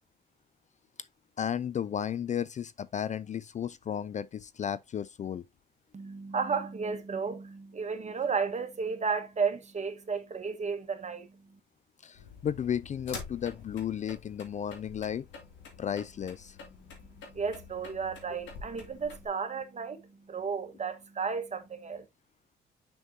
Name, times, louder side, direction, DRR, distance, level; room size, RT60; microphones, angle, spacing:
voice 1, 1.4-5.4 12.0-15.3 15.8-16.6, left 9 dB, 40° left, 0.4 m, -34 dB
voice 2, 5.9-11.3 17.3-22.0, right 5 dB, 35° right, 1.4 m, -33 dB
sound 1, 12.1-19.3, left 5 dB, 70° left, 2.7 m, -47 dB
6.5 x 6.1 x 2.8 m
supercardioid pair, 70°, 20 cm